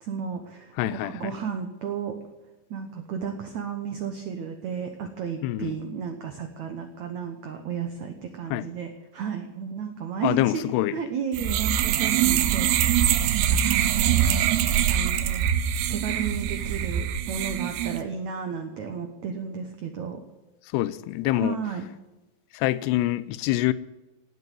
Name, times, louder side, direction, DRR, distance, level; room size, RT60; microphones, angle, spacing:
voice 1, 0.0-2.2 2.7-13.1 13.5-15.5 15.9-20.2 21.3-21.9, right 6 dB, 70° right, 1.8 m, -33 dB
voice 2, 0.8-1.3 5.4-5.8 8.5-8.7 10.2-11.0 20.7-21.6 22.5-23.7, left 16 dB, 80° left, 2.7 m, -25 dB
sound 1, 11.3-18.0, right 10 dB, 85° right, 3.0 m, -23 dB
17.5 x 8.1 x 9.2 m
omnidirectional pair, 4.9 m